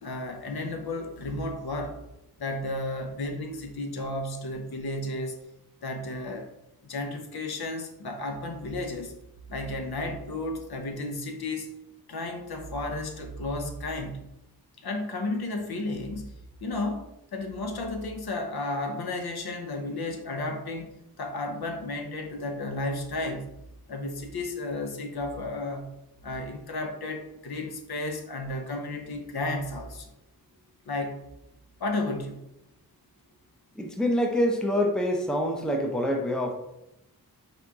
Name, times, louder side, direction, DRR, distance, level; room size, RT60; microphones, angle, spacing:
voice 1, 0.0-2.0 2.4-5.4 5.8-6.5 6.8-9.1 9.5-11.7 12.1-14.3 14.8-16.3 16.6-23.5 23.9-25.9 26.2-30.1 30.9-31.2 31.8-32.4, left 2 dB, 75° left, 4 dB, 0.7 m, -33 dB
voice 2, 33.8-36.5, equal, ahead, 2 dB, 0.5 m, -26 dB
3.8 x 2.8 x 3.5 m, 0.86 s
wide cardioid pair, 90°, 38 cm